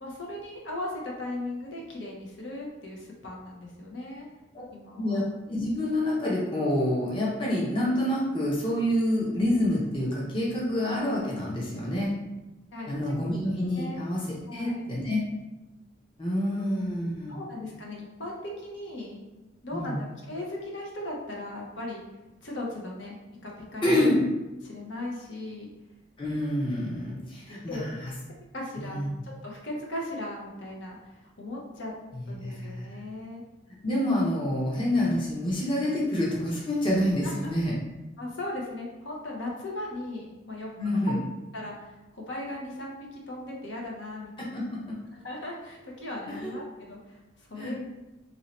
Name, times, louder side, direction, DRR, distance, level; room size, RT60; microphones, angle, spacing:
voice 1, 0.0-4.3 4.7-5.2 12.7-12.9 13.8-14.1 14.5-14.8 16.5-16.6 17.3-19.2 19.6-22.0 22.4-23.2 23.4-23.9 24.6-25.7 27.7-27.9 28.5-29.1 29.4-31.9 32.3-33.4 37.2-37.5 38.2-40.7 41.1-41.2 41.5-44.3 45.2-47.8, left 1 dB, 70° left, -2 dB, 0.9 m, -37 dB
voice 2, 4.9-12.1 12.9-14.2 14.5-15.2 16.2-17.4 19.7-20.0 23.8-24.2 26.2-28.1 28.8-29.1 32.1-32.8 33.8-37.8 40.8-41.2 44.4-44.8 46.3-46.5 47.6-47.8, left 1 dB, 25° left, -5 dB, 0.7 m, -27 dB
3.1 x 2.7 x 4.2 m, 1.0 s
head